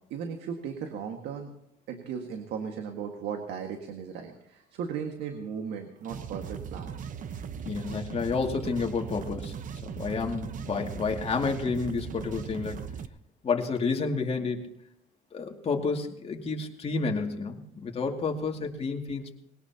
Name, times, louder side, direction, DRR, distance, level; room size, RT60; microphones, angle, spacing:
voice 1, 0.1-1.5 1.9-7.0, right 7 dB, 80° right, 4 dB, 1.8 m, -36 dB
sound 1, 6.0-13.1, right 7 dB, 50° right, 1.0 m, -38 dB
voice 2, 7.6-9.5 9.8-12.8 13.4-14.7 15.3-19.3, left 4 dB, 35° left, 2 dB, 2.5 m, -30 dB
21.0 x 18.0 x 2.9 m, 0.78 s
cardioid pair, 110°, 17 cm